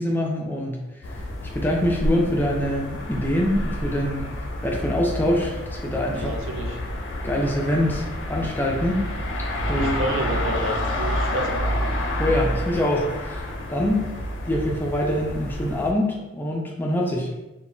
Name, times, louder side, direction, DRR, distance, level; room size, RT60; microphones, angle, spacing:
voice 1, 0.0-4.3 4.6-6.4 7.2-9.0 9.7-9.9 12.2-13.4 13.7-14.1 14.4-17.4, left 1 dB, 10° left, -1 dB, 0.3 m, -24 dB
sound 1, 1.0-15.9, left 1 dB, 75° left, 0.4 m, -29 dB
voice 2, 6.1-6.8 9.7-11.7, right 2 dB, 90° right, 1 dB, 0.5 m, -30 dB
2.1 x 2.0 x 3.6 m, 1.0 s
head